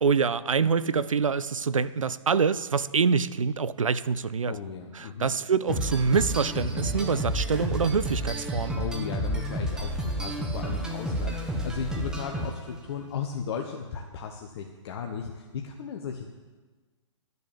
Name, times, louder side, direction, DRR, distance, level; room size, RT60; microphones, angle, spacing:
voice 1, 0.0-4.5 5.0-8.8, right 5 dB, 85° right, 16 dB, 0.6 m, -25 dB
voice 2, 4.5-5.3 8.8-16.4, left 6 dB, 50° left, 3 dB, 1.1 m, -36 dB
sound 1, 5.7-12.8, right 1 dB, 5° right, 1.4 m, -31 dB
12.5 x 6.8 x 8.5 m, 1.3 s
hypercardioid pair, 125°, 16 cm